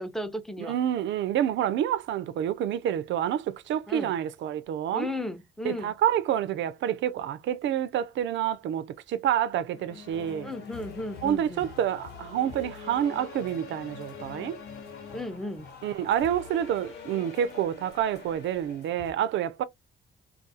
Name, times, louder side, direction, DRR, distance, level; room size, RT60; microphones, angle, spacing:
voice 1, 0.0-0.8 3.9-4.1 4.9-5.9 10.4-11.7 15.1-15.7, left 1 dB, ahead, 0.5 m, -35 dB
voice 2, 0.6-5.1 5.6-10.5 11.2-14.6 15.8-19.6, right 10 dB, 70° right, 0.4 m, -28 dB
sound 1, 9.7-17.6, left 6 dB, 85° left, 0.9 m, -46 dB
sound 2, 10.1-19.1, left 5 dB, 60° left, 1.0 m, -47 dB
2.4 x 2.3 x 2.6 m
cardioid pair, 90°, 20 cm